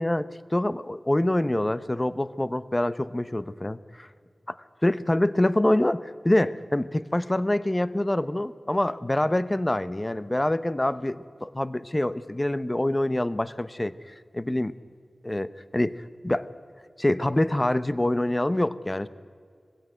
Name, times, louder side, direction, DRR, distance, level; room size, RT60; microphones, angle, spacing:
voice 1, 0.0-4.1 4.5-4.6 4.8-13.9 14.3-14.7 15.2-15.9 16.2-16.5 17.0-19.1, left 1 dB, 20° left, 15 dB, 0.8 m, -25 dB
21.0 x 16.0 x 9.1 m, 2.1 s
wide cardioid pair, 55°, 0 cm